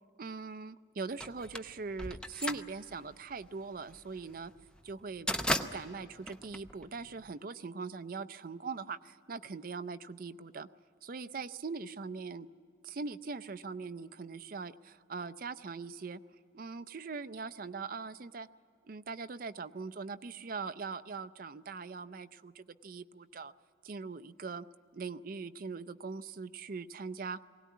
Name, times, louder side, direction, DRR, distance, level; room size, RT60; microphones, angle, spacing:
voice 1, 0.2-4.5 4.8-5.3 5.6-10.7 11.0-12.5 12.8-16.2 16.5-18.5 18.9-23.5 23.8-24.7 24.9-27.4, right 4 dB, 45° right, 13 dB, 0.5 m, -41 dB
sound 1, 1.2-7.3, left 1 dB, 5° left, 0.6 m, -37 dB
20.5 x 17.5 x 9.3 m, 2.5 s
head